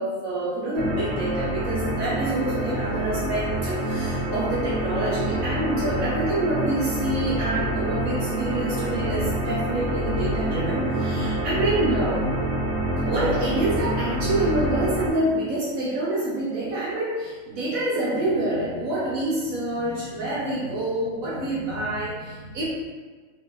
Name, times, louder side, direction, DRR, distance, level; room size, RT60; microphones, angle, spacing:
voice 1, 0.0-12.2 13.0-22.6, right 1 dB, 80° right, -9 dB, 1.4 m, -27 dB
sound 1, 0.8-15.1, right 1 dB, 45° right, 1.6 m, -27 dB
3.2 x 3.0 x 3.7 m, 1.4 s
omnidirectional pair, 1.4 m